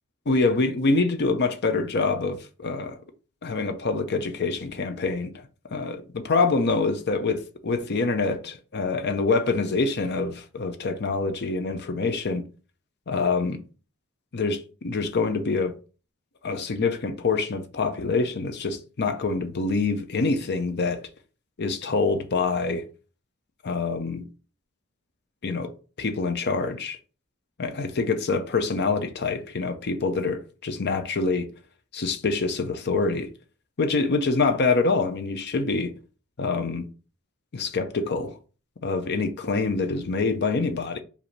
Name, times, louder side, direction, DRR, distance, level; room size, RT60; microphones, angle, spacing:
voice 1, 0.3-3.0 3.4-5.4 5.7-12.4 13.1-13.6 14.3-15.7 16.4-21.0 21.6-22.8 23.6-24.2 25.4-25.7 26.0-27.0 27.6-31.5 31.9-33.3 33.8-35.9 36.4-36.9 37.5-38.4 38.8-41.0, left 3 dB, 50° left, 0.6 m, -25 dB
5.0 x 2.8 x 3.2 m
head